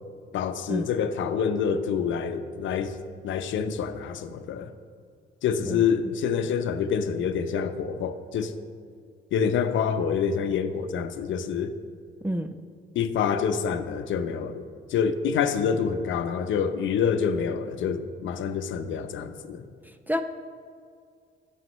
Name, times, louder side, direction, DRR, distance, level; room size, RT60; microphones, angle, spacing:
voice 1, 0.3-3.0 3.2-4.7 5.4-8.5 9.3-11.7 12.9-19.7, left 7 dB, 75° left, 9 dB, 0.7 m, -27 dB
voice 2, 12.2-12.5 20.1-20.2, equal, 10° right, 8 dB, 0.5 m, -28 dB
17.0 x 6.4 x 3.1 m, 2.2 s
cardioid pair, 90°, 20 cm